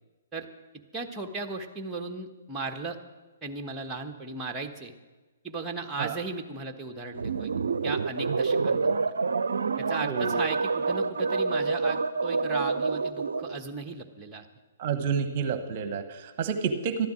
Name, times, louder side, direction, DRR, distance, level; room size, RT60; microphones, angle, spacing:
voice 1, 0.9-3.0 3.4-4.9 5.4-7.5 7.8-9.0 9.8-14.4, right 3 dB, 10° right, 3 dB, 1.1 m, -36 dB
sound 1, 7.2-13.6, right 4 dB, 65° right, 0.5 m, -27 dB
voice 2, 10.0-10.5 14.8-17.1, right 6 dB, 40° right, 9 dB, 1.1 m, -29 dB
13.0 x 13.0 x 6.2 m, 1.2 s
figure-of-eight pair, 125°, 0 cm